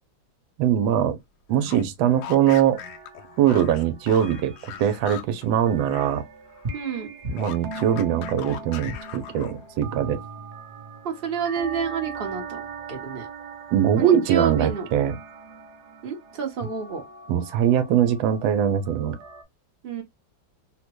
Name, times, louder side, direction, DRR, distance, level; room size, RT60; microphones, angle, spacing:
voice 1, 0.6-1.2 1.5-2.8 3.4-4.5 4.8-6.2 7.3-10.2 13.7-15.2 17.3-19.2, right 9 dB, 85° right, 1.4 m, -22 dB
sound 1, 1.5-6.2 6.5-9.8, left 9 dB, 70° left, 1.0 m, -40 dB
sound 2, 2.7-19.4, right 5 dB, 65° right, 1.2 m, -41 dB
voice 2, 6.7-7.1 11.0-13.3 14.0-14.9 16.0-17.0 19.8-20.0, right 6 dB, 45° right, 0.7 m, -29 dB
3.8 x 2.1 x 3.0 m
omnidirectional pair, 2.1 m